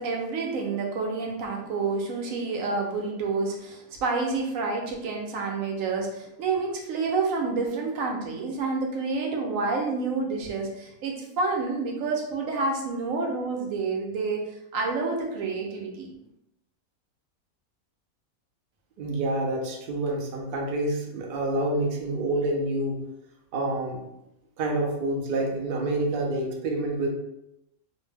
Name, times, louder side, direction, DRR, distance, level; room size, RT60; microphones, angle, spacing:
voice 1, 0.0-14.4 14.7-16.1, right 4 dB, 70° right, 0 dB, 0.9 m, -29 dB
voice 2, 19.0-23.0 23.5-24.0 24.6-27.1, right 1 dB, 90° right, 1 dB, 0.4 m, -27 dB
2.6 x 2.1 x 3.2 m, 0.85 s
omnidirectional pair, 1.6 m